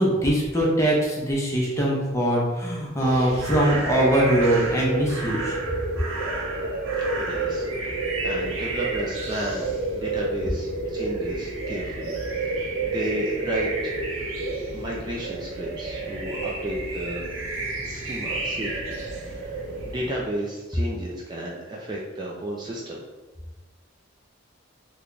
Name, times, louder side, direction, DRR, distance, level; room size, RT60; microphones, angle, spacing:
voice 1, 0.0-5.6, right 1 dB, 15° left, -4 dB, 0.6 m, -22 dB
sound 1, 3.0-20.1, right 2 dB, 85° right, 0.6 m, -29 dB
voice 2, 7.2-7.9 8.2-12.2 12.4-14.0 14.7-17.3 17.8-19.0 19.2-19.6 19.8-23.0, right 1 dB, 20° right, -3 dB, 0.4 m, -33 dB
3.3 x 2.3 x 3.8 m, 1.2 s
head